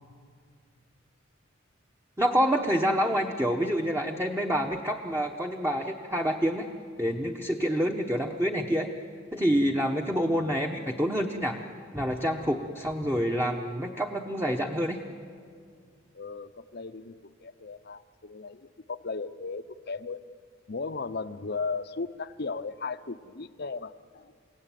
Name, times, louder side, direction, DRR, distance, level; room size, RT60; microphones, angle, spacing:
voice 1, 2.2-6.7 7.0-8.9 9.3-11.6 11.9-15.0, equal, 15° right, 1 dB, 1.1 m, -27 dB
voice 2, 16.1-17.2 17.4-20.2 20.7-24.3, left 4 dB, 55° left, 12 dB, 0.8 m, -36 dB
29.5 x 17.5 x 9.2 m, 2.1 s
head